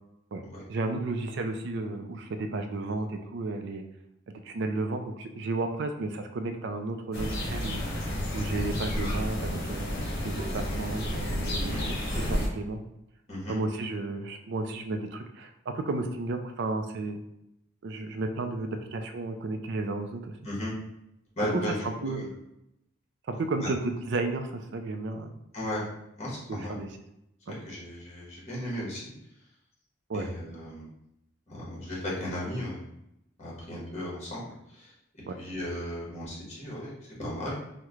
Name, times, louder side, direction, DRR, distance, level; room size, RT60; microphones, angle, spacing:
voice 1, 0.7-3.8 4.3-8.0 8.3-9.9 10.2-12.8 13.5-17.2 17.8-20.4 21.5-22.2 23.3-25.3 26.5-26.9 27.5-27.6 30.1-30.3 35.3-35.4, right 2 dB, 55° right, 6 dB, 0.4 m, -33 dB
sound 1, 7.1-12.5, equal, 50° left, 0.9 m, -31 dB
voice 2, 21.4-21.7 22.0-22.3 23.6-23.7 25.5-25.8 26.2-26.8 27.5-29.1 30.1-30.9 31.5-32.8 33.4-34.9 35.4-36.9 37.2-37.6, left 1 dB, 35° left, -5 dB, 1.1 m, -35 dB
3.0 x 2.1 x 3.6 m, 0.84 s
head